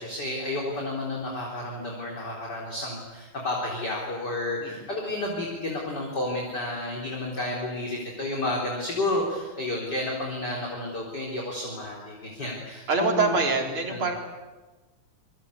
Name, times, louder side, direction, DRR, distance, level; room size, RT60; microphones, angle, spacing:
voice 1, 0.0-13.3 13.9-14.1, left 2 dB, 30° left, -1 dB, 4.5 m, -31 dB
voice 2, 12.9-14.1, right 3 dB, 40° right, 2 dB, 4.6 m, -25 dB
27.5 x 23.5 x 8.6 m, 1.2 s
omnidirectional pair, 3.8 m